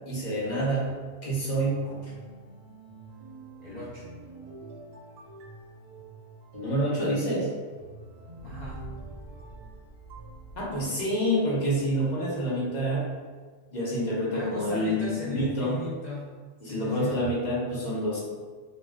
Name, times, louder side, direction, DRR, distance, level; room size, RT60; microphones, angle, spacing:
voice 1, 0.1-0.9 1.2-1.9 6.5-7.5 10.6-13.1 13.7-15.9 16.6-18.2, equal, 45° left, -6 dB, 0.7 m, -27 dB
sound 1, 1.6-10.9, right 2 dB, 60° right, 0.7 m, -46 dB
voice 2, 3.6-4.1 8.4-8.9 14.3-16.3 16.7-17.1, left 2 dB, 70° left, -7 dB, 0.4 m, -38 dB
2.2 x 2.2 x 3.3 m, 1.5 s
omnidirectional pair, 1.3 m